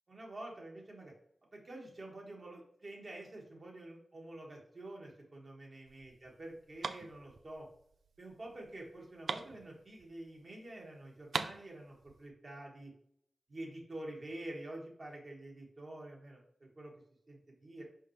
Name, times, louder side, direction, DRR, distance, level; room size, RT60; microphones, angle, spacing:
voice 1, 0.1-1.1 1.5-7.7 8.2-12.9 13.5-16.9 17.3-17.8, right 1 dB, 45° right, -1 dB, 1.9 m, -48 dB
sound 1, 5.9-10.4 10.7-10.8 11.0-12.3, right 5 dB, 80° right, 0.4 m, -42 dB
5.6 x 5.4 x 3.3 m, 0.68 s
wide cardioid pair, 95°, 0 cm